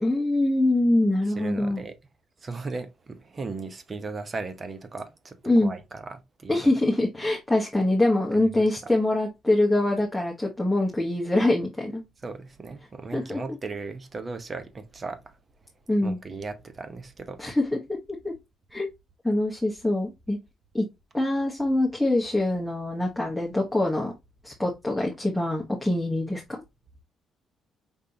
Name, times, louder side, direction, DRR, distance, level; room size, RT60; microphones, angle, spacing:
voice 1, 0.0-1.8 5.4-5.7 6.5-12.0 13.1-13.4 15.9-16.2 17.4-18.0 18.2-18.3 18.7-18.9 19.2-20.4 20.7-20.8 21.1-24.1 24.4-26.6, left 1 dB, 5° left, 1.3 m, -24 dB
voice 2, 1.4-1.9 2.4-6.7 8.3-8.6 12.2-15.4 16.0-17.4, right 3 dB, 35° right, 1.0 m, -37 dB
5.4 x 3.2 x 2.9 m
cardioid pair, 90°, 0 cm